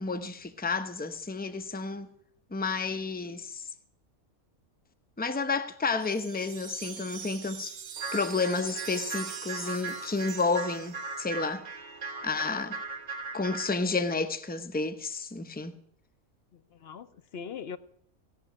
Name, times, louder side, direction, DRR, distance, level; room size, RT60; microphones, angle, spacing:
voice 1, 0.0-2.1 2.5-3.6 5.2-7.7 8.1-11.7 12.2-12.8 13.3-15.8, left 4 dB, 10° left, 0.5 m, -31 dB
Wind chime, 6.0-11.4, right 8 dB, 90° right, 1.4 m, -43 dB
sound 1, 8.0-13.8, right 4 dB, 35° right, 1.1 m, -39 dB
voice 2, 16.5-17.8, left 7 dB, 55° left, 0.8 m, -41 dB
17.0 x 6.0 x 9.7 m
omnidirectional pair, 1.5 m